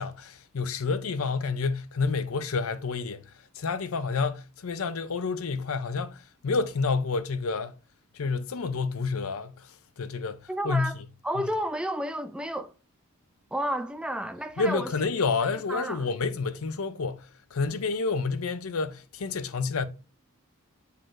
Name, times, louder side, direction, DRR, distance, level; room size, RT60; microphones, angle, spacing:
voice 1, 0.0-7.7 8.1-11.0 14.6-19.9, left 4 dB, 70° left, 0.6 m, -29 dB
voice 2, 10.5-11.0 11.2-12.7 13.5-14.9 15.7-16.0, right 1 dB, 5° right, 0.5 m, -31 dB
9.2 x 4.1 x 2.6 m
head